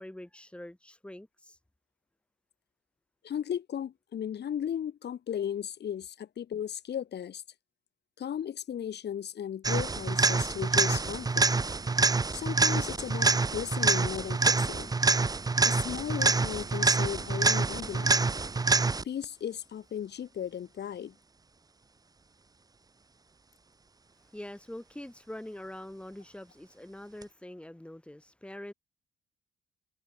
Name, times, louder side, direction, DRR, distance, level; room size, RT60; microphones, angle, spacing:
voice 1, 0.0-1.6 24.3-28.7, left 1 dB, 5° left, 7.2 m, -44 dB
voice 2, 3.2-7.4 8.2-11.5 12.3-14.9 15.6-18.2 19.0-21.1, left 9 dB, 55° left, 5.7 m, -36 dB
sound 1, 9.6-19.2 27.2-27.3, right 3 dB, 20° right, 1.1 m, -26 dB
cardioid pair, 110°, 20 cm